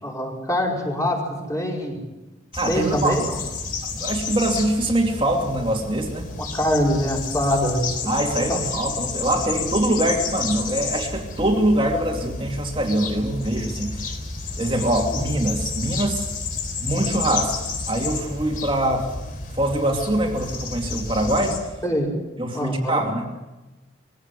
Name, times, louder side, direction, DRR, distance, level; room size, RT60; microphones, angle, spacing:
voice 1, 0.0-2.0 2.7-3.3 6.5-8.1 8.5-8.6 15.1-15.2 21.8-22.1 22.5-23.0, equal, 15° left, -1 dB, 5.1 m, -24 dB
sound 1, 2.5-21.6, left 4 dB, 45° left, 3.7 m, -31 dB
voice 2, 2.5-3.2 3.9-6.3 8.0-14.1 14.6-16.3 16.8-19.1 19.5-21.6 22.4-23.3, right 1 dB, 25° right, 2 dB, 2.6 m, -23 dB
22.0 x 16.5 x 8.4 m, 1.1 s
head